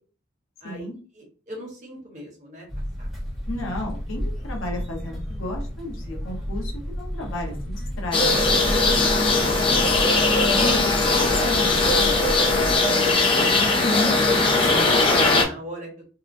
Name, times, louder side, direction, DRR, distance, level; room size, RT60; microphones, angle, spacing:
voice 1, 0.6-1.0 3.5-8.4 10.5-11.8 13.8-14.2, left 2 dB, 85° left, 1 dB, 0.8 m, -32 dB
voice 2, 1.1-2.7 3.0-3.1 11.7-15.9, left 1 dB, 35° right, -1 dB, 0.9 m, -38 dB
sound 1, 2.7-12.8, equal, ahead, 0.8 m, -32 dB
sound 2, 8.1-15.4, left 3 dB, 25° left, 0.4 m, -19 dB
2.8 x 2.0 x 2.5 m, 0.38 s
head